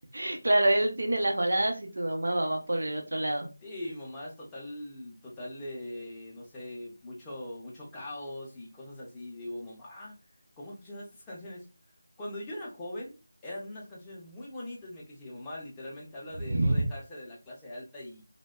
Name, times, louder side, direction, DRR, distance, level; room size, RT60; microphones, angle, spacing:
voice 1, 0.1-3.5 16.5-16.8, right 1 dB, 65° right, 3 dB, 0.7 m, -27 dB
voice 2, 3.6-10.2 10.6-11.6 12.2-18.2, left 1 dB, 10° left, -5 dB, 0.5 m, -41 dB
2.5 x 2.1 x 2.3 m, 0.30 s
figure-of-eight pair, 175°, 0 cm